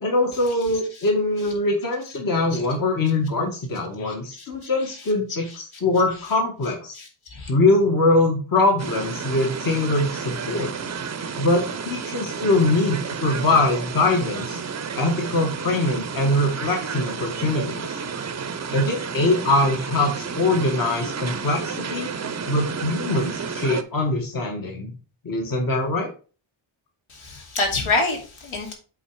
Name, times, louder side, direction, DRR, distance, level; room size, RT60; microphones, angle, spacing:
voice 1, 0.0-6.9 7.5-10.7 11.4-14.6 15.0-18.0 18.7-22.1 22.5-24.9 25.2-26.1, left 2 dB, 40° left, 1 dB, 1.4 m, -22 dB
voice 2, 4.0-4.7 6.9-7.5 27.1-28.7, left 3 dB, 75° left, 1 dB, 2.7 m, -27 dB
sound 1, 8.8-23.8, right 6 dB, 35° right, 0.6 m, -31 dB
8.1 x 3.9 x 4.6 m, 0.36 s
wide cardioid pair, 165°, 49 cm